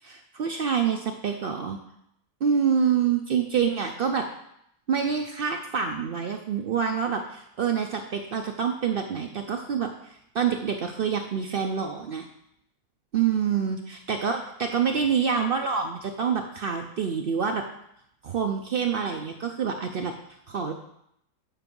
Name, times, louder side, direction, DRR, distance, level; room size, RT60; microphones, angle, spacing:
voice 1, 0.0-1.8 2.4-4.3 4.9-12.3 13.1-17.6 18.2-20.2 20.5-20.7, right 7 dB, 70° right, 4 dB, 0.5 m, -27 dB
7.4 x 4.7 x 5.2 m, 0.76 s
omnidirectional pair, 1.5 m